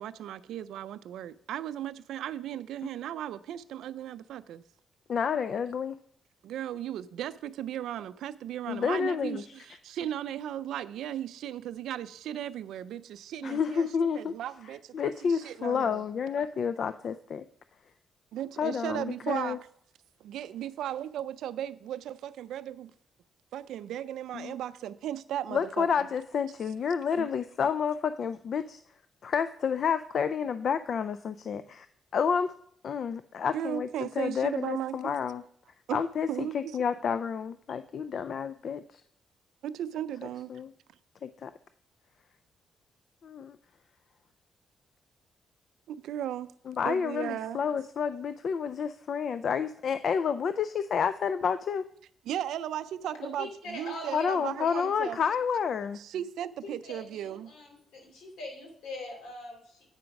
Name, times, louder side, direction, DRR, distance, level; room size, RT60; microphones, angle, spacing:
voice 1, 0.0-4.6 6.4-13.9 14.1-16.0 16.4-16.5 18.3-19.6 20.2-22.9 23.5-26.1 27.1-27.3 33.5-35.2 35.9-36.0 36.3-36.8 39.6-40.5 45.9-46.5 46.9-47.6 52.3-55.2 56.0-57.5, right 11 dB, 90° right, 0.3 m, -36 dB
voice 2, 5.1-6.0 8.7-9.5 13.4-14.3 14.9-17.5 18.6-19.6 24.3-24.6 25.5-28.8 29.2-31.9 32.1-32.5 32.8-35.4 35.9-39.0 40.5-40.7 41.2-41.5 43.2-43.6 46.7-51.8 54.1-56.0, left 6 dB, 60° left, 0.3 m, -30 dB
voice 3, 53.2-54.3 54.6-55.1 56.6-59.8, left 2 dB, 85° left, 2.8 m, -42 dB
8.8 x 5.1 x 5.8 m
cardioid pair, 100°, 0 cm